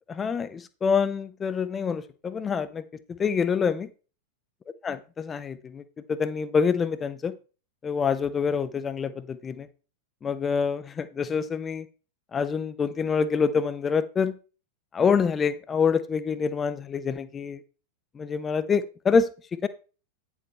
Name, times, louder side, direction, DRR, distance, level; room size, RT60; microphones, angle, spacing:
voice 1, 0.2-2.8 3.1-3.9 4.8-7.3 7.8-9.7 10.2-11.9 12.3-14.4 14.9-17.6 18.1-19.3 19.6-19.7, left 6 dB, 20° left, 14 dB, 0.8 m, -26 dB
9.7 x 7.2 x 3.4 m, 0.35 s
figure-of-eight pair, 90°, 0 cm